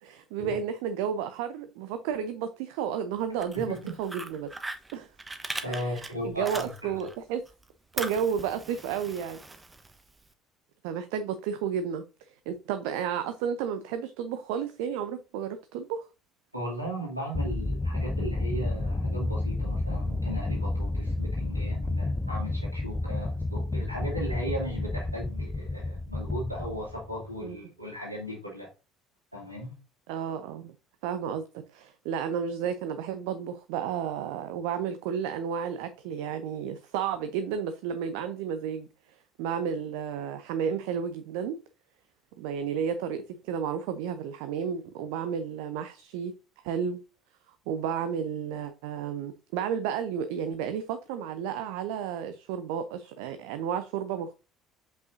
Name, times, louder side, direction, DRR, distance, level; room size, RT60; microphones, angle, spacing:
voice 1, 0.0-4.5 4.9-5.1 5.6-7.4 7.9-9.4 10.8-12.0 12.5-16.1 27.4-27.6 30.1-30.7 31.0-38.9 39.4-41.6 42.4-46.3 46.6-47.0 47.7-54.3, right 7 dB, 60° right, 0.6 m, -32 dB
Fire, 3.2-7.1 7.5-10.3, right 2 dB, 15° right, 1.0 m, -40 dB
voice 2, 5.6-7.1 16.5-28.7 29.3-29.7, equal, 90° right, 2.7 m, -37 dB
sound 1, 17.3-27.4, left 2 dB, 15° left, 0.5 m, -31 dB
7.8 x 5.6 x 2.6 m
figure-of-eight pair, 60°, 0 cm